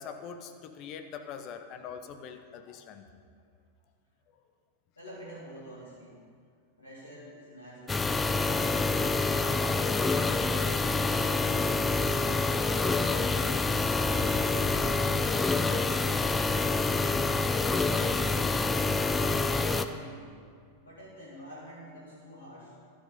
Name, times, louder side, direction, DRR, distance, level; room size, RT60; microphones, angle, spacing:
voice 1, 0.0-3.0 14.1-14.2, left 7 dB, 40° left, 6 dB, 1.0 m, -43 dB
voice 2, 5.0-6.2 6.8-8.9 9.4-10.2 18.9-20.3 20.8-22.7, equal, 75° left, -7 dB, 2.4 m, -48 dB
sound 1, 7.9-19.9, left 3 dB, 15° left, 0.5 m, -27 dB
12.5 x 9.0 x 5.4 m, 2.1 s
figure-of-eight pair, 90°, 0 cm